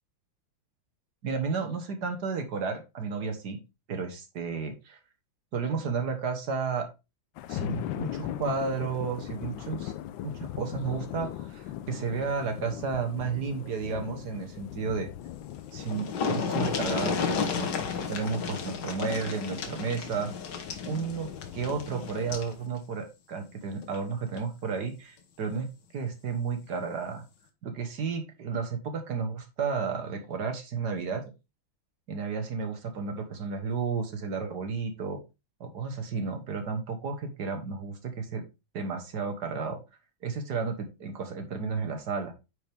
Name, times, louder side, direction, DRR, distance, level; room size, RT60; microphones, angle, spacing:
voice 1, 1.2-3.6 3.9-5.0 5.5-6.8 7.5-9.9 10.2-15.1 15.7-17.7 18.1-20.3 20.9-25.7 25.9-27.2 27.6-31.2 32.1-35.2 35.6-38.5 38.7-39.8 40.2-42.3, right 5 dB, 60° right, 6 dB, 1.7 m, -32 dB
sound 1, 7.4-22.7, left 12 dB, 80° left, 1.3 m, -40 dB
sound 2, 15.4-15.5 15.7-22.5 23.8-24.0 24.4-24.5, left 6 dB, 65° left, 1.7 m, -32 dB
9.2 x 4.8 x 3.4 m, 0.26 s
omnidirectional pair, 2.2 m